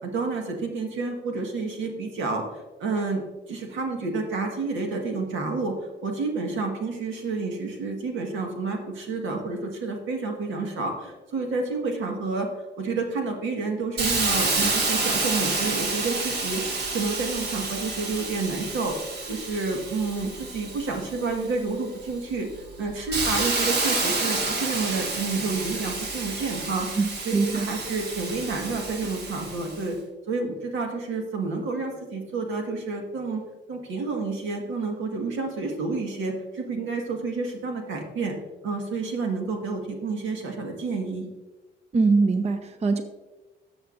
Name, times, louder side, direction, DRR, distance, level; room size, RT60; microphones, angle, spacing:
voice 1, 0.0-2.4 2.8-3.2 3.5-5.8 6.0-12.5 12.8-16.6 16.9-18.9 19.3-22.5 22.8-26.9 27.2-30.0 30.3-33.4 33.7-38.4 38.6-41.3, right 3 dB, 80° right, 2 dB, 1.6 m, -29 dB
Hiss, 14.0-21.5 22.1-29.8, right 3 dB, 55° right, 1.7 m, -29 dB
voice 2, 27.0-27.7 41.9-43.0, right 4 dB, 35° right, 8 dB, 0.6 m, -22 dB
12.5 x 7.0 x 2.6 m, 1.2 s
cardioid pair, 90°, 20 cm